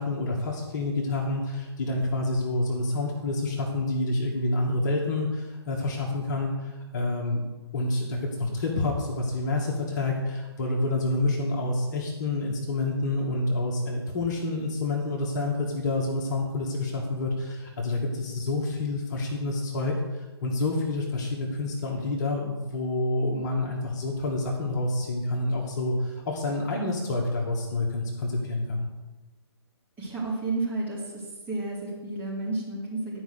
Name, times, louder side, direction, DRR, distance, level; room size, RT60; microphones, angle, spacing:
voice 1, 0.0-7.4 7.7-19.9 20.4-28.9, left 2 dB, 40° left, -1 dB, 2.1 m, -28 dB
voice 2, 30.0-31.2 31.5-33.2, right 2 dB, 15° right, -8 dB, 4.2 m, -31 dB
12.0 x 5.5 x 6.8 m, 1.2 s
figure-of-eight pair, 140°, 15 cm